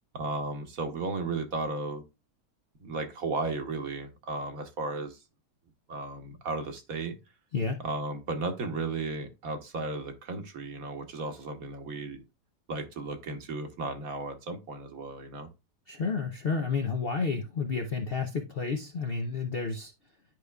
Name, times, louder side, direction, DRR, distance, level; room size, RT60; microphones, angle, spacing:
voice 1, 0.1-2.0 2.8-5.2 5.9-7.2 7.8-12.2 12.7-15.5, right 3 dB, 60° right, 1.4 m, -34 dB
voice 2, 15.9-19.9, left 4 dB, 55° left, 0.6 m, -31 dB
10.5 x 4.9 x 2.3 m
omnidirectional pair, 1.8 m